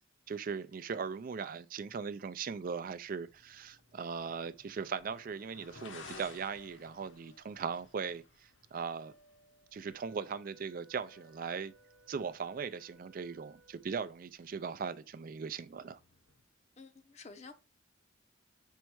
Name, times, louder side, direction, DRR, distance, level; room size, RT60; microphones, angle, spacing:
voice 1, 0.3-9.1 9.7-11.7 12.1-16.0, right 6 dB, 45° right, 0.4 m, -39 dB
sound 1, 1.8-16.4, left 3 dB, 65° left, 1.2 m, -59 dB
sound 2, 4.0-12.5, equal, 85° left, 2.7 m, -67 dB
Wind instrument woodwind instrument, 9.8-14.2, right 2 dB, 80° right, 0.8 m, -64 dB
voice 2, 16.8-17.5, left 4 dB, 35° left, 0.7 m, -51 dB
5.3 x 4.6 x 4.6 m
head